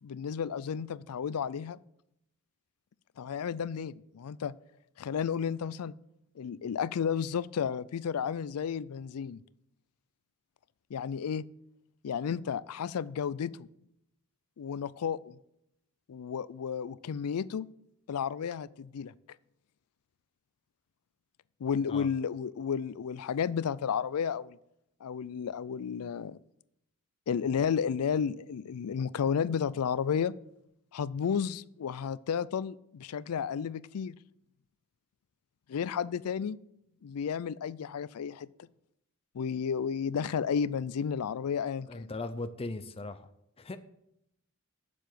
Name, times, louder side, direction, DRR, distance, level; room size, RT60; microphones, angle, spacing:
voice 1, 0.0-1.8 3.2-4.5 5.0-5.9 6.4-9.4 10.9-11.4 12.0-13.7 14.6-15.4 16.1-17.7 18.1-19.1 21.6-24.6 25.0-26.4 27.3-30.3 30.9-34.1 35.7-36.6 37.0-38.5 39.3-42.1, left 7 dB, 75° left, 20 dB, 0.4 m, -32 dB
voice 2, 41.9-43.3 43.6-43.8, left 2 dB, 25° left, 11 dB, 0.5 m, -38 dB
7.4 x 6.9 x 7.8 m, 0.80 s
head